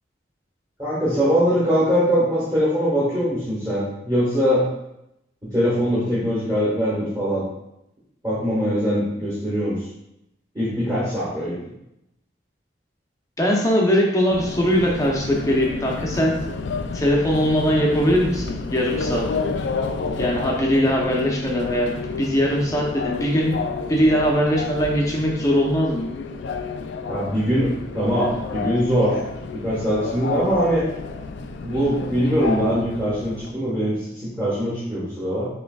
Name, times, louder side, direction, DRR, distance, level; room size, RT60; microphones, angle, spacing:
voice 1, 0.8-4.7 5.4-7.4 8.2-9.8 10.5-11.6 27.1-29.2 29.5-30.8 31.6-35.5, equal, 20° right, -9 dB, 1.3 m, -22 dB
voice 2, 13.4-16.4 16.9-19.3 20.2-21.9 22.2-23.6 23.9-26.1, equal, 15° left, -2 dB, 0.7 m, -21 dB
Subway metro underground, 14.3-33.5, left 4 dB, 70° left, 0.3 m, -30 dB
5.8 x 3.1 x 2.3 m, 0.85 s
head